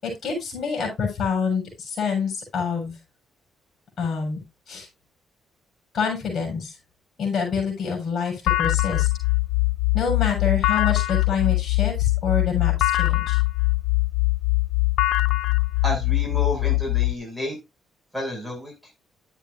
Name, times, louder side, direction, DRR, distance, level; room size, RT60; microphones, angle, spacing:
voice 1, 0.0-3.0 4.0-4.4 4.7-4.9 5.9-6.8 7.2-9.1 9.9-13.4, left 6 dB, 60° left, 1 dB, 7.0 m, -27 dB
sound 1, 8.5-17.1, left 21 dB, 85° left, 0.5 m, -22 dB
voice 2, 15.8-17.6 18.1-18.7, left 1 dB, 5° left, 0 dB, 6.9 m, -30 dB
12.0 x 9.1 x 2.6 m, 0.24 s
cardioid pair, 90°, 0 cm